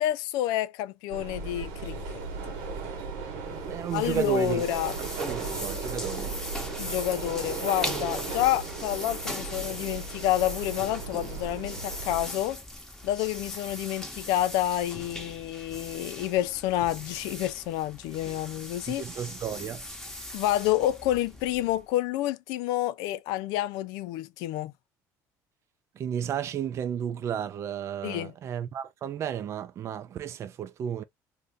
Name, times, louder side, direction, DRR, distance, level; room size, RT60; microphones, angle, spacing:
voice 1, 0.0-2.5 3.9-5.0 6.8-12.6 13.0-19.0 20.3-24.7 28.0-28.3, left 13 dB, 85° left, 0.4 m, -29 dB
sound 1, 1.1-12.2, right 4 dB, 90° right, 1.1 m, -36 dB
sound 2, 3.4-21.9, left 1 dB, 5° left, 0.9 m, -40 dB
voice 2, 3.7-4.6 5.0-6.3 18.9-19.8 26.0-31.0, right 8 dB, 45° right, 0.4 m, -32 dB
2.7 x 2.5 x 3.4 m
cardioid pair, 115°, 7 cm